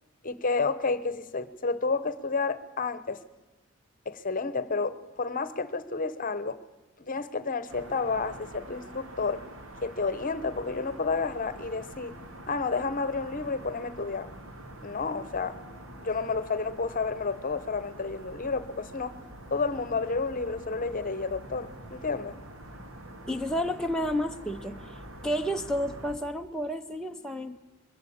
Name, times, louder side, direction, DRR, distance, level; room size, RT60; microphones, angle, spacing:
voice 1, 0.2-3.2 4.1-6.6 7.0-9.4 9.8-12.1 12.5-14.3 14.8-15.6 16.0-19.2 19.5-22.4, left 4 dB, 40° left, 0.9 m, -30 dB
sound 1, 7.7-26.2, right 1 dB, 65° right, 2.4 m, -46 dB
voice 2, 23.3-24.8 25.2-27.6, equal, 5° left, 0.6 m, -30 dB
22.5 x 16.0 x 8.6 m
head